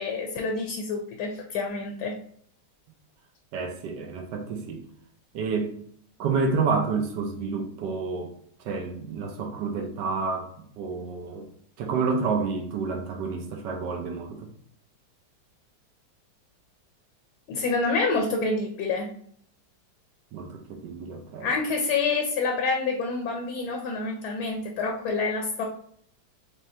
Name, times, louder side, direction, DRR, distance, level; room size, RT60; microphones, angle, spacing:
voice 1, 0.0-2.1 17.5-19.1 21.4-25.7, left 4 dB, 70° left, 2 dB, 1.1 m, -27 dB
voice 2, 3.5-4.8 5.3-5.7 6.2-8.3 8.6-11.4 11.8-14.4 20.3-21.5, right 4 dB, 75° right, 4 dB, 1.2 m, -29 dB
4.2 x 3.4 x 2.7 m, 0.62 s
omnidirectional pair, 2.0 m